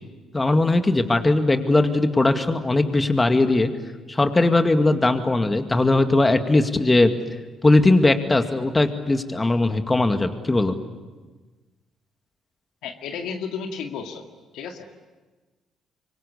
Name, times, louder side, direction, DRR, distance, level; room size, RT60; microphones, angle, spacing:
voice 1, 0.3-3.7 4.1-7.1 7.6-10.8, left 2 dB, 20° left, 7 dB, 2.2 m, -19 dB
voice 2, 12.8-14.2 14.5-15.1, left 6 dB, 70° left, 4 dB, 2.1 m, -33 dB
26.0 x 23.5 x 8.5 m, 1.3 s
hypercardioid pair, 45°, 0 cm